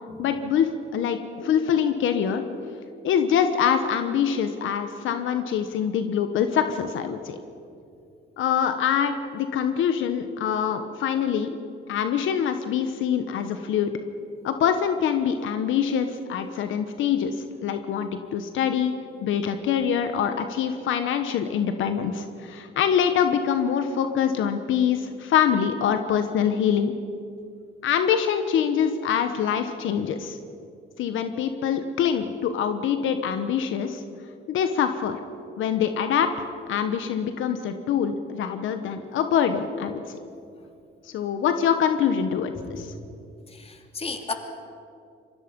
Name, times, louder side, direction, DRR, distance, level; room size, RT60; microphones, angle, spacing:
voice 1, 0.2-2.4 3.0-7.4 8.4-11.5 11.9-13.9 14.4-18.9 19.2-26.9 27.8-30.4 31.0-34.0 34.5-35.2 35.6-40.2 41.0-42.9, left 8 dB, 80° left, 8 dB, 1.2 m, -24 dB
voice 2, 43.5-44.3, left 3 dB, 30° left, 5 dB, 2.6 m, -34 dB
26.0 x 21.0 x 5.4 m, 2.6 s
cardioid pair, 90°, 20 cm